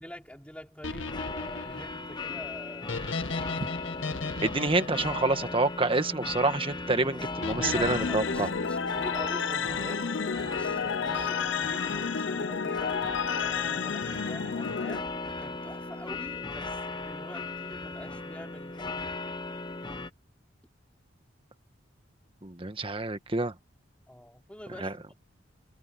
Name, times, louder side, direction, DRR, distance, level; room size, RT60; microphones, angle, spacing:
voice 1, 0.0-3.6 7.0-12.9 13.4-19.4 24.1-25.1, equal, 5° left, 4.3 m, -45 dB
sound 1, 0.8-6.1 7.4-9.3, left 3 dB, 90° left, 1.8 m, -37 dB
sound 2, 1.0-20.1, left 3 dB, 25° left, 1.1 m, -37 dB
voice 2, 4.4-8.5 22.4-23.5 24.8-24.9, right 2 dB, 30° right, 1.5 m, -27 dB
sound 3, 7.6-15.0, left 6 dB, 65° left, 0.6 m, -31 dB
head